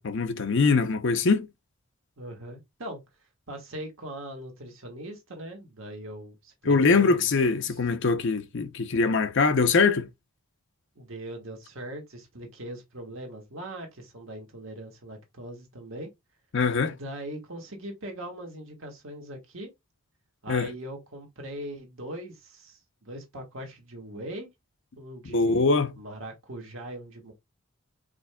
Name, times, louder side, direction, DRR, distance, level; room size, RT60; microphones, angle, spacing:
voice 1, 0.0-1.5 6.7-10.1 16.5-17.0 20.5-20.7 25.3-25.9, left 4 dB, 55° left, 0.6 m, -23 dB
voice 2, 2.2-3.0 3.5-7.3 7.6-7.8 11.0-16.1 16.9-19.7 20.4-24.5 25.0-25.6 26.0-27.3, right 1 dB, 60° right, 1.4 m, -40 dB
5.0 x 4.3 x 2.2 m
head